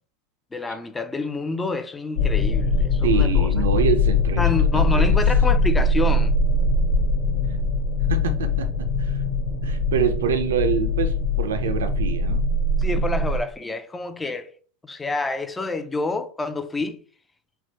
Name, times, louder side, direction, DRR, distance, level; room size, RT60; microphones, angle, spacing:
voice 1, 0.5-3.6 4.4-6.3 12.8-14.5 14.8-17.0, left 3 dB, 15° left, 0.4 m, -28 dB
sound 1, 2.2-13.4, left 3 dB, 65° left, 0.6 m, -21 dB
voice 2, 3.0-5.2 8.1-8.7 9.0-9.2 9.6-12.5, right 7 dB, 80° right, 0.5 m, -26 dB
3.4 x 2.1 x 2.9 m
hypercardioid pair, 95°, 0 cm